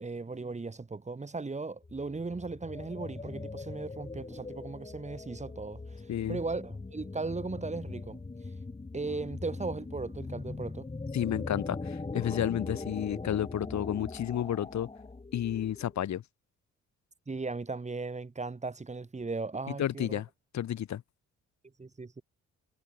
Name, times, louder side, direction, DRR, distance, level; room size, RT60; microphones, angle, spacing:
voice 1, 0.0-8.2 8.9-10.9 17.3-20.2 21.8-22.2, right 3 dB, 25° right, 2.7 m, -37 dB
sound 1, 1.8-16.0, left 3 dB, 20° left, 2.5 m, -41 dB
voice 2, 6.1-6.4 11.1-14.9 15.3-16.2 19.8-20.3 20.5-21.0, left 11 dB, 65° left, 2.9 m, -31 dB
cardioid pair, 90°, 30 cm